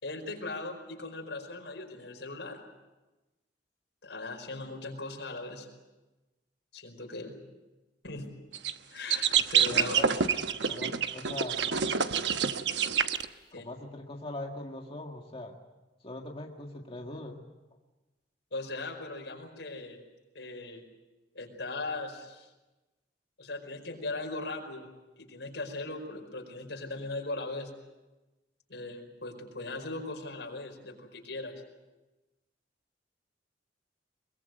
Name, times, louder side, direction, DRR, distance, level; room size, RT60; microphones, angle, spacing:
voice 1, 0.0-2.6 4.0-5.7 6.7-7.4 8.0-8.3 8.9-10.0 13.5-13.7 18.5-20.0 20.3-20.8 21.3-22.5 23.4-24.9 25.2-27.7 28.7-31.6, left 2 dB, 85° left, 2 dB, 5.0 m, -39 dB
sound 1, 8.5-8.7 9.1-13.2, right 7 dB, 80° right, 1.0 m, -27 dB
voice 2, 9.7-10.1 10.6-11.6 13.6-15.5 16.0-17.4, left 1 dB, 35° left, 1 dB, 1.8 m, -41 dB
22.5 x 21.5 x 7.9 m, 1.1 s
head